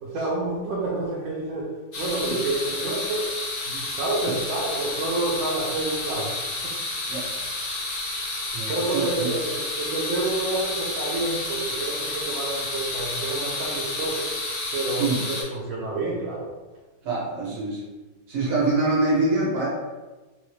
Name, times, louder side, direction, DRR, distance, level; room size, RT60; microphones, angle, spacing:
voice 1, 0.0-3.3 3.7-6.4 6.6-6.7 7.0-7.2 8.7-14.3 14.7-16.5, right 2 dB, 70° right, -5 dB, 1.0 m, -29 dB
sound 1, 1.9-15.4, left 2 dB, 50° left, 1.1 m, -30 dB
voice 2, 8.5-9.3 15.0-15.3 17.0-17.9 18.3-19.7, right 2 dB, 90° right, -6 dB, 1.5 m, -25 dB
4.1 x 2.0 x 3.1 m, 1.2 s
omnidirectional pair, 1.8 m